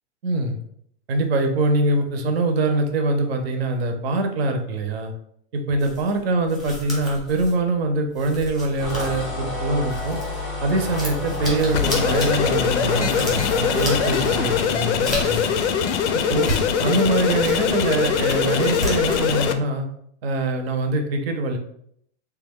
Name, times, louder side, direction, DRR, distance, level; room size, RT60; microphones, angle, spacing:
voice 1, 0.2-0.6 1.1-5.1 5.5-10.2 10.6-15.6 16.1-16.5 16.8-19.9 20.2-21.6, right 2 dB, 60° right, 5 dB, 0.7 m, -23 dB
sound 1, 5.8-10.4 10.7-15.8 16.2-17.7 18.0-19.3, right 1 dB, ahead, 0.8 m, -33 dB
sound 2, 8.8-14.6, left 3 dB, 15° left, 0.3 m, -30 dB
sound 3, 11.7-19.5, left 7 dB, 85° left, 0.5 m, -22 dB
3.4 x 2.3 x 3.5 m, 0.69 s
supercardioid pair, 170°, 35 cm